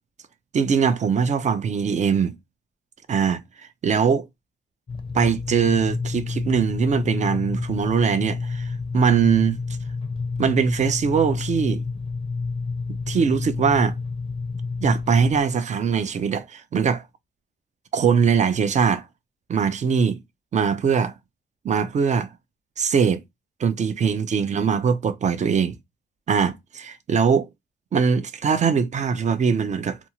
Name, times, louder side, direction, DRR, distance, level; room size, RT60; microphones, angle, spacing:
voice 1, 0.5-2.3 3.1-3.4 3.8-4.3 5.1-9.6 10.4-11.8 13.1-14.0 14.8-17.0 17.9-19.1 19.5-20.2 20.5-21.1 21.6-22.3 22.8-23.2 23.6-25.7 26.3-27.5 27.9-30.0, right 6 dB, 35° right, 0.5 m, -21 dB
sound 1, 4.9-15.4, left 4 dB, 25° left, 0.5 m, -29 dB
2.5 x 2.4 x 2.9 m
cardioid pair, 90°, 20 cm